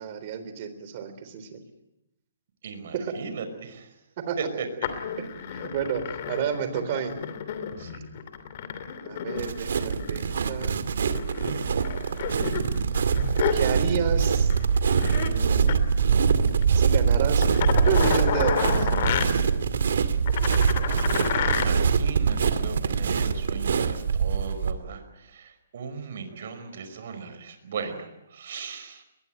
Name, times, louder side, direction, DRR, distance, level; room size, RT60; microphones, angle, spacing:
voice 1, 0.0-1.6 2.9-3.1 4.2-4.4 5.2-7.1 9.0-10.9 13.5-14.5 15.1-15.8 16.7-17.5 17.9-18.9, right 7 dB, 35° right, 10 dB, 3.7 m, -31 dB
voice 2, 2.6-3.9 4.4-4.6 7.8-8.0 20.4-20.5 20.8-29.0, right 5 dB, 55° right, 8 dB, 5.1 m, -37 dB
sound 1, 4.8-10.7 11.1-14.1 14.3-14.6 14.9-15.3 15.6-15.8 16.5-16.6 17.4-19.2 20.3-21.7 22.9-23.0, left 8 dB, 45° left, 2.9 m, -30 dB
sound 2, 9.4-24.7, right 6 dB, 75° right, 2.2 m, -24 dB
22.0 x 21.0 x 9.3 m, 0.86 s
hypercardioid pair, 165°, 0 cm